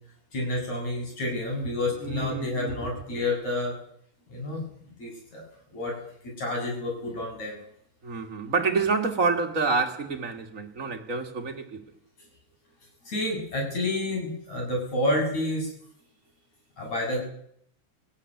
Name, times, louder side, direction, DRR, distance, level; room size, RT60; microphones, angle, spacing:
voice 1, 0.3-3.7 4.3-4.6 5.0-5.4 5.7-6.0 6.4-7.6 13.1-15.7 16.8-17.2, left 1 dB, 60° left, 9.1 m, -29 dB
voice 2, 2.0-2.9 8.0-11.8, right 4 dB, 30° right, 1.7 m, -28 dB
18.0 x 17.5 x 9.4 m
omnidirectional pair, 3.5 m